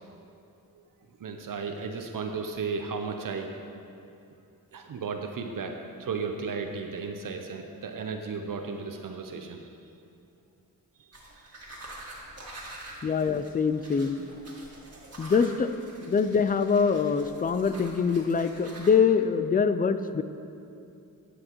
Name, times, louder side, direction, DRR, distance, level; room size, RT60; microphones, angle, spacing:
voice 1, 1.2-3.5 4.7-9.7, right 5 dB, 65° right, 4 dB, 0.7 m, -34 dB
sound 1, 11.1-18.9, right 1 dB, 45° right, 1.9 m, -46 dB
voice 2, 13.0-14.3 15.2-15.7 16.0-20.2, left 6 dB, 25° left, 11 dB, 0.4 m, -24 dB
11.0 x 7.9 x 3.0 m, 2.7 s
cardioid pair, 70°, 35 cm